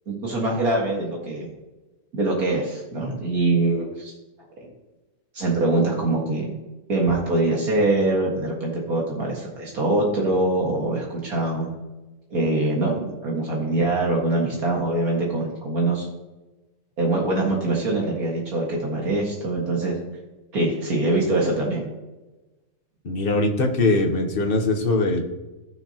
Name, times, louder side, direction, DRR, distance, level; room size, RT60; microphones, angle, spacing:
voice 1, 0.1-1.5 2.1-4.1 5.3-6.5 6.9-11.7 12.3-16.1 17.0-20.0 20.5-21.9, right 2 dB, 70° right, -2 dB, 2.3 m, -23 dB
voice 2, 23.0-25.2, left 2 dB, 40° left, 3 dB, 1.2 m, -21 dB
16.0 x 6.4 x 2.9 m, 1.1 s
omnidirectional pair, 1.6 m